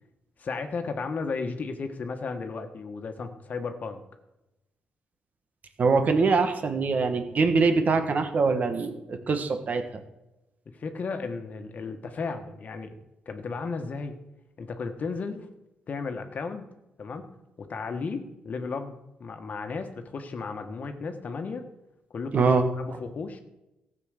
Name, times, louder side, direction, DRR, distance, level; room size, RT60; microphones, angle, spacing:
voice 1, 0.4-4.0 10.7-12.9 13.2-14.1 14.6-15.5 15.9-16.6 17.0-17.3 17.6-21.6 22.1-23.4, left 4 dB, 50° left, 7 dB, 1.4 m, -34 dB
voice 2, 5.8-9.8 22.3-22.6, right 4 dB, 50° right, 7 dB, 1.5 m, -23 dB
14.0 x 7.4 x 6.5 m, 0.96 s
cardioid pair, 95°, 3 cm